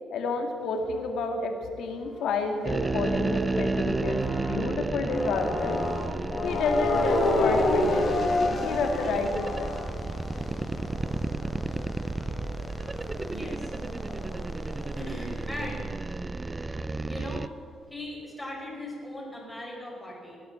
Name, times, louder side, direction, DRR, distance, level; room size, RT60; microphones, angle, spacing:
voice 1, 0.1-5.8 6.4-8.1 8.6-9.7, left 3 dB, 75° left, 4 dB, 2.3 m, -30 dB
sound 1, 1.8-4.6 5.0-15.5, left 2 dB, 50° left, 3.0 m, -31 dB
sound 2, 2.6-17.5, right 3 dB, 20° right, 0.4 m, -32 dB
voice 2, 13.2-13.7 15.0-15.9 17.0-17.5 17.9-20.4, left 1 dB, ahead, -3 dB, 5.6 m, -39 dB
18.5 x 10.5 x 7.2 m, 2.2 s
cardioid pair, 90°, 0 cm